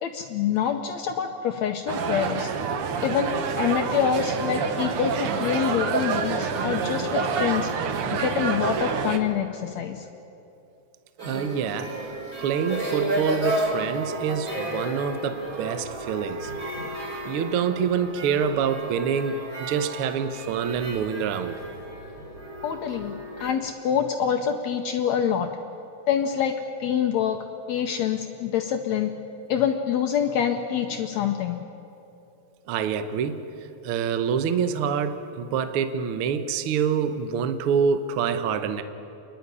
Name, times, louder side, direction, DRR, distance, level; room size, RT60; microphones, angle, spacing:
voice 1, 0.0-2.5 3.0-7.7 8.2-10.1 22.6-23.1 23.4-25.5 26.1-26.5 26.8-27.4 27.7-29.1 29.5-31.6, left 8 dB, 70° left, 5 dB, 1.8 m, -26 dB
sound 1, 1.9-9.2, right 6 dB, 65° right, 1.4 m, -27 dB
sound 2, 11.2-23.5, right 1 dB, 35° right, 4.7 m, -33 dB
voice 2, 11.2-12.0 12.4-16.5 17.2-21.6 32.7-33.4 33.8-38.8, right 7 dB, 85° right, 9 dB, 1.2 m, -26 dB
28.0 x 11.0 x 9.8 m, 2.8 s
omnidirectional pair, 3.9 m